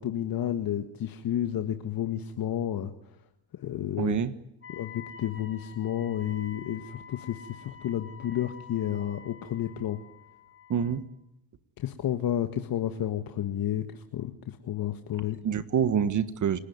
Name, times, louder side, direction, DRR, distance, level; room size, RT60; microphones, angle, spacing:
voice 1, 0.0-2.9 3.5-4.2 4.7-10.0 11.8-15.4, left 11 dB, 50° left, 7 dB, 1.7 m, -31 dB
voice 2, 4.0-4.3 10.7-11.0 15.4-16.6, right 8 dB, 40° right, 14 dB, 1.6 m, -26 dB
Wind instrument woodwind instrument, 4.6-11.0, left 7 dB, 30° left, 4.9 m, -48 dB
29.5 x 17.5 x 9.6 m, 0.90 s
cardioid pair, 105°, 44 cm